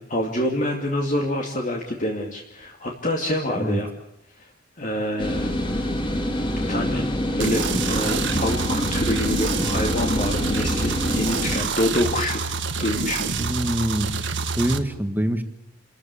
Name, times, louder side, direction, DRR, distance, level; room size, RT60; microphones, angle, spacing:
voice 1, 0.0-3.9 4.4-4.5 4.8-5.5 6.7-7.1 7.3-12.4 12.8-13.5, left 1 dB, 40° left, 1 dB, 2.5 m, -26 dB
sound 1, 5.2-11.6, left 1 dB, 25° left, 3.1 m, -26 dB
sound 2, 7.4-14.8, right 4 dB, 65° right, 1.8 m, -27 dB
voice 2, 13.4-14.1 14.6-15.4, right 1 dB, 10° right, 8 dB, 1.7 m, -24 dB
29.0 x 14.5 x 8.5 m, 0.82 s
head